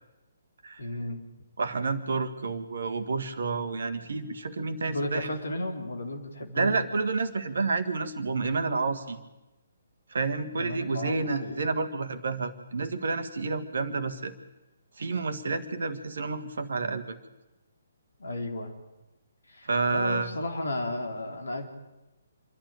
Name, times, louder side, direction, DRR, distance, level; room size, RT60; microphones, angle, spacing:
voice 1, 0.8-1.2 4.9-6.8 10.5-11.7 18.2-18.7 19.5-21.7, left 1 dB, 65° left, 5 dB, 3.4 m, -34 dB
voice 2, 1.6-5.3 6.6-9.2 10.1-14.3 15.0-17.2 19.6-20.3, right 4 dB, 60° right, 10 dB, 1.7 m, -29 dB
27.0 x 12.0 x 9.0 m, 1.0 s
figure-of-eight pair, 135°, 0 cm